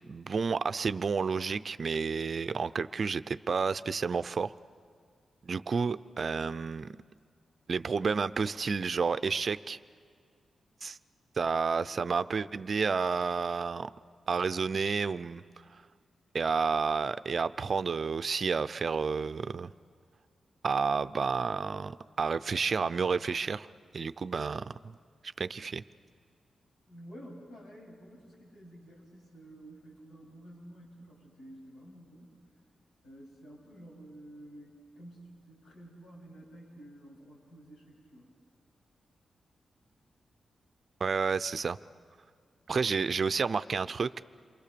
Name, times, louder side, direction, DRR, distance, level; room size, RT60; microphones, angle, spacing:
voice 1, 0.1-4.5 5.4-6.9 7.7-9.8 10.8-11.0 11.4-13.9 14.3-15.4 15.7-15.8 16.3-19.7 20.6-23.7 23.9-25.0 25.4-25.8 41.0-41.8 42.7-44.2, right 5 dB, 50° right, 14 dB, 0.5 m, -30 dB
voice 2, 26.9-32.3 33.0-38.3, right 1 dB, 85° left, -2 dB, 7.7 m, -51 dB
28.5 x 23.5 x 6.9 m, 2.1 s
cardioid pair, 90°, 0 cm